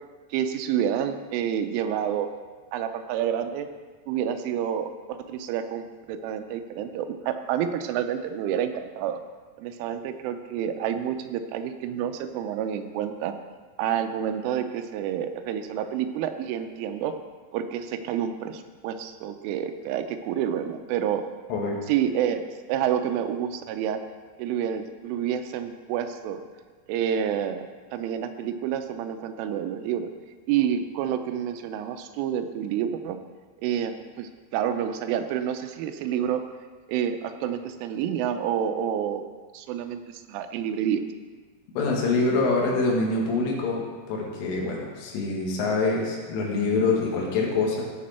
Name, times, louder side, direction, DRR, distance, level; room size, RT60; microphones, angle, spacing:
voice 1, 0.3-2.3 2.7-3.7 4.1-9.2 9.6-13.3 13.8-17.1 17.5-21.2 21.9-24.0 24.4-26.4 26.9-27.7 27.9-30.1 30.5-33.2 33.6-36.4 36.9-39.2 39.5-41.0, right 9 dB, 90° right, 8 dB, 3.2 m, -28 dB
voice 2, 41.8-47.8, left 3 dB, 85° left, -2 dB, 4.2 m, -25 dB
16.0 x 6.1 x 4.3 m, 1.4 s
omnidirectional pair, 5.5 m